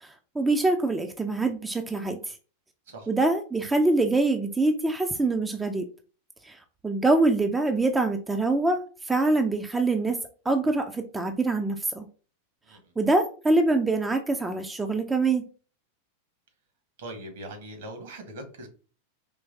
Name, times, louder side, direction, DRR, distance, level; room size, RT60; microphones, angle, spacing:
voice 1, 0.0-2.4 3.1-5.9 6.4-10.2 10.5-12.1 13.0-15.4, right 2 dB, 10° right, 5 dB, 0.4 m, -24 dB
voice 2, 17.0-18.7, right 1 dB, 55° right, 6 dB, 1.2 m, -41 dB
4.5 x 3.1 x 2.6 m, 0.37 s
figure-of-eight pair, 90°, 0 cm